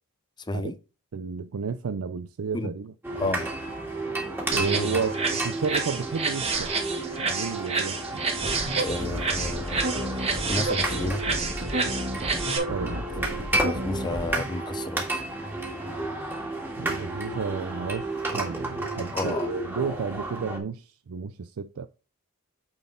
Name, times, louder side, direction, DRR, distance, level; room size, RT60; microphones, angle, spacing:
voice 1, 1.1-2.9 3.2-3.4 4.5-6.7 7.2-8.2 12.7-13.0 16.8-21.9, right 5 dB, 75° right, 0.5 m, -32 dB
sound 1, 3.0-20.6, right 2 dB, 10° right, 1.7 m, -32 dB
voice 2, 3.1-3.5 4.4-5.0 8.8-11.2 13.1-13.2 13.6-15.2 19.1-19.5, left 2 dB, 20° left, 0.6 m, -32 dB
sound 2, 4.5-12.6, right 4 dB, 30° right, 1.6 m, -29 dB
sound 3, 8.4-14.4, right 1 dB, 50° right, 2.3 m, -32 dB
9.0 x 4.2 x 3.7 m
head